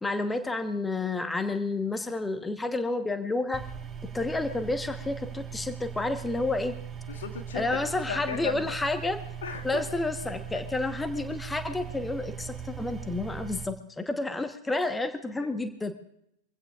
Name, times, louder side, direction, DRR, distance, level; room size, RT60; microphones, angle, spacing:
voice 1, 0.0-3.6 4.1-6.7 7.5-9.2 9.6-15.9, left 2 dB, 10° left, 8 dB, 1.1 m, -30 dB
sound 1, 3.5-13.7, right 8 dB, 25° right, 1.2 m, -40 dB
voice 2, 7.1-8.7 9.4-9.8, left 6 dB, 60° left, 3 dB, 1.9 m, -36 dB
25.0 x 16.0 x 2.4 m, 0.77 s
figure-of-eight pair, 90°, 0 cm